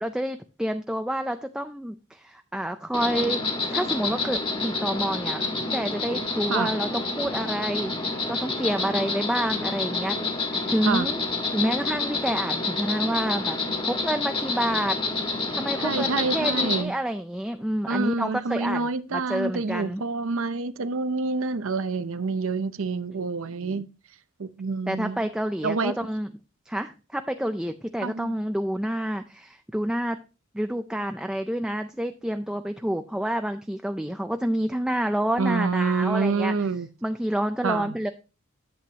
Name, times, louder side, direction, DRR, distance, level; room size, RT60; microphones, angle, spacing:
voice 1, 0.0-3.4 3.7-5.4 5.7-10.2 10.7-11.2 11.5-13.6 13.8-15.0 15.5-20.0 23.1-23.2 23.6-23.8 24.9-26.3 26.7-30.2 30.5-36.5 37.0-38.1, right 1 dB, 5° right, 0.4 m, -28 dB
Insect, 2.9-16.8, left 3 dB, 25° left, 1.9 m, -28 dB
voice 2, 15.8-16.9 17.9-23.9 24.4-25.3 25.6-25.9 28.0-28.3 35.4-36.9 37.6-38.0, right 4 dB, 65° right, 0.7 m, -27 dB
11.0 x 7.9 x 2.9 m
head